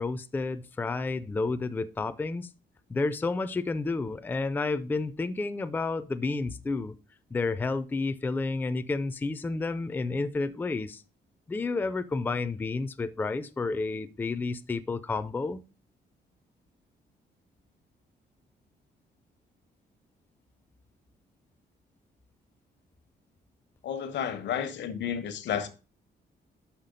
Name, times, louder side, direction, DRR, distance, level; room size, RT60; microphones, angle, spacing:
voice 1, 0.0-2.5 2.9-6.9 7.3-11.0 11.5-15.6, left 3 dB, 10° left, 0.3 m, -30 dB
voice 2, 23.8-25.7, left 8 dB, 80° left, 1.0 m, -31 dB
5.7 x 5.5 x 5.1 m
cardioid pair, 150°, 18 cm